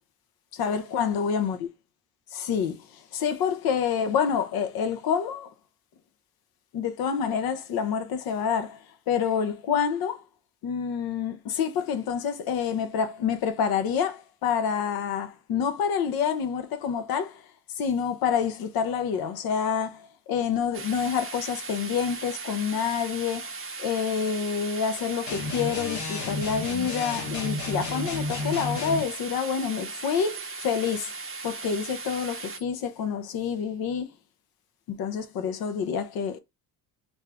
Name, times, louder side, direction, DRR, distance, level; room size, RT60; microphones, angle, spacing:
voice 1, 0.5-1.6 2.3-5.5 6.7-10.2 10.6-17.4 17.8-23.5 23.8-31.1 31.4-34.1 34.9-36.4, left 7 dB, 75° left, 0.8 m, -28 dB
sound 1, 20.7-32.6, right 3 dB, 35° right, 0.6 m, -38 dB
sound 2, 25.3-29.1, left 2 dB, 50° left, 1.0 m, -32 dB
3.4 x 2.7 x 3.4 m
cardioid pair, 115°, 36 cm